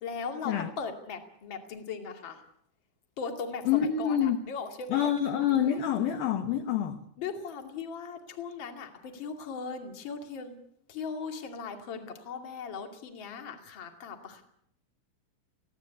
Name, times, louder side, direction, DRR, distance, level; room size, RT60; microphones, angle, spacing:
voice 1, 0.0-2.4 3.2-5.1 7.2-10.6 10.9-14.4, left 5 dB, 35° left, 5 dB, 2.2 m, -38 dB
voice 2, 3.7-4.4 4.9-7.0, left 9 dB, 70° left, 7 dB, 2.4 m, -27 dB
22.5 x 16.5 x 8.3 m, 0.71 s
omnidirectional pair, 5.5 m